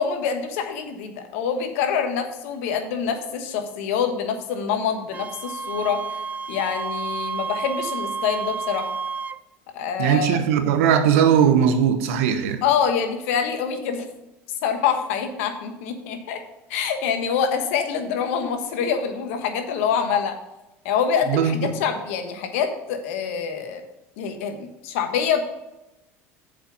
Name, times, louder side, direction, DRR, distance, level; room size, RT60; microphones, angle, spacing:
voice 1, 0.0-6.2 6.5-8.9 9.7-10.4 12.6-14.0 14.6-16.4 16.7-20.4 20.8-23.8 24.2-25.4, left 7 dB, 80° left, 1.2 m, -25 dB
Wind instrument woodwind instrument, 5.1-9.4, right 5 dB, 25° right, 0.4 m, -31 dB
voice 2, 10.0-12.6 21.3-21.7, right 8 dB, 80° right, 1.0 m, -19 dB
7.1 x 5.2 x 7.0 m
supercardioid pair, 90°, 7 cm